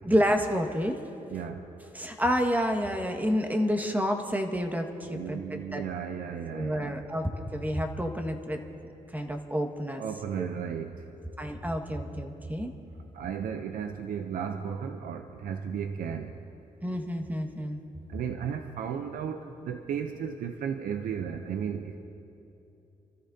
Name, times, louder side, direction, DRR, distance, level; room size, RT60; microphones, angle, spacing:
voice 1, 0.0-1.0 1.9-5.8 6.5-8.6 9.1-10.0 10.4-10.5 11.4-12.7 16.8-17.8, equal, 10° right, 4 dB, 1.7 m, -29 dB
voice 2, 1.3-1.6 5.0-7.0 10.0-11.0 13.1-16.3 18.1-22.0, right 7 dB, 75° right, 6 dB, 0.7 m, -34 dB
28.0 x 13.5 x 2.8 m, 3.0 s
supercardioid pair, 55°, 15 cm